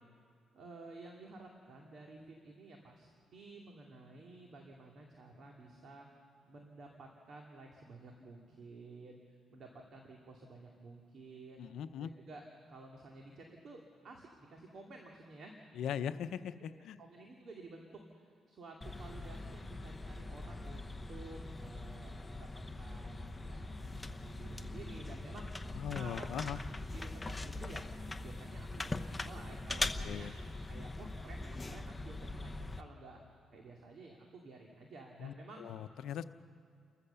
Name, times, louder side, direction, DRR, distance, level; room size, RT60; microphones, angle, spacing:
voice 1, 0.5-6.1 6.5-9.2 9.5-11.6 12.0-12.4 12.7-15.5 17.0-17.9 18.5-22.5 22.8-26.6 26.9-27.9 28.2-30.3 30.7-32.5 32.8-33.2 33.5-35.6, right 3 dB, 55° right, 1 dB, 2.4 m, -52 dB
voice 2, 11.6-12.1 15.8-17.0 25.7-26.6 29.8-30.3 35.2-36.2, left 9 dB, 75° left, 10 dB, 0.7 m, -40 dB
sound 1, 18.8-32.8, left 2 dB, 15° left, 0.9 m, -42 dB
29.5 x 14.5 x 7.0 m, 2.3 s
cardioid pair, 90°, 0 cm